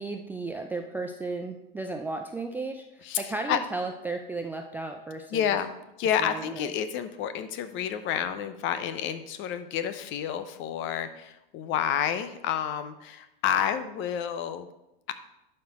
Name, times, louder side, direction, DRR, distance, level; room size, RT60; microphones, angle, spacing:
voice 1, 0.0-5.5 6.2-6.7, right 3 dB, 5° right, 3 dB, 0.3 m, -34 dB
voice 2, 3.0-3.6 5.3-14.7, left 9 dB, 40° left, 11 dB, 0.8 m, -29 dB
11.5 x 4.4 x 4.2 m, 0.91 s
hypercardioid pair, 110°, 30 cm